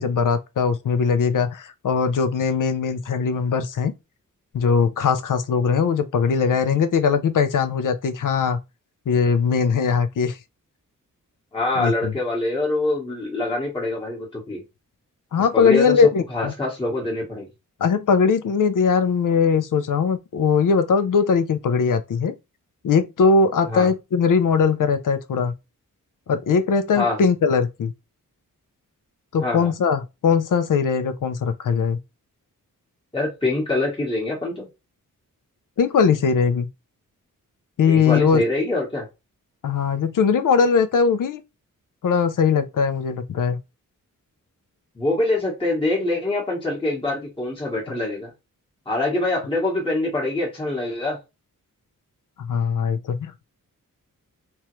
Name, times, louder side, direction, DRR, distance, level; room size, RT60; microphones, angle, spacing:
voice 1, 0.0-3.9 4.5-8.6 9.1-10.4 11.8-12.1 15.3-16.5 17.8-22.3 22.8-25.5 26.3-27.9 29.3-32.0 35.8-36.7 37.8-38.4 39.6-41.4 42.0-43.6 52.4-53.5, left 5 dB, 70° left, 0.6 m, -20 dB
voice 2, 11.5-14.6 15.5-17.5 23.7-23.9 26.9-27.2 29.4-29.7 33.1-34.7 37.9-39.1 44.9-48.3 48.9-51.2, left 2 dB, 15° left, 1.1 m, -24 dB
3.5 x 3.1 x 3.0 m
wide cardioid pair, 180°, 33 cm